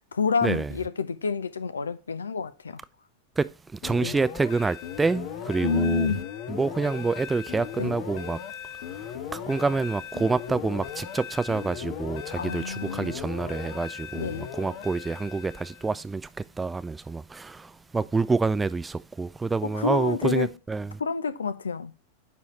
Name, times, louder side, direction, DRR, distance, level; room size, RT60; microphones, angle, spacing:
voice 1, 0.1-2.8 4.0-4.1 5.6-6.3 7.8-7.9 12.3-13.2 14.2-14.5 19.7-20.5 21.0-21.9, left 5 dB, 70° left, 0.6 m, -28 dB
voice 2, 3.4-6.1 6.5-8.4 8.9-21.0, right 4 dB, 10° right, 0.3 m, -27 dB
sound 1, 3.8-16.0, left 9 dB, 45° left, 0.9 m, -38 dB
9.3 x 4.1 x 3.0 m
figure-of-eight pair, 90°, 0 cm